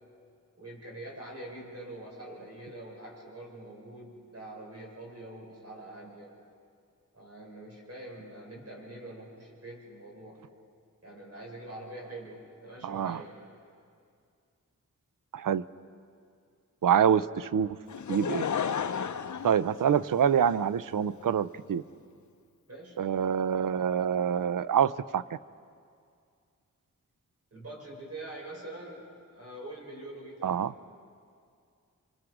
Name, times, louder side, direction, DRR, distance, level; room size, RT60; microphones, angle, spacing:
voice 1, 0.6-6.4 7.1-10.4 11.0-13.4 20.0-20.1 22.7-23.0 27.5-30.6, right 1 dB, 50° right, -3 dB, 6.7 m, -44 dB
voice 2, 12.8-13.2 15.3-15.6 16.8-17.8 18.1-18.5 19.4-21.8 23.0-25.2 30.4-30.7, right 8 dB, 80° right, 16 dB, 0.6 m, -26 dB
Laughter / Crowd, 17.9-20.5 21.2-21.3, left 7 dB, 65° left, 0.7 m, -32 dB
28.5 x 24.5 x 5.0 m, 2.3 s
wide cardioid pair, 80°, 32 cm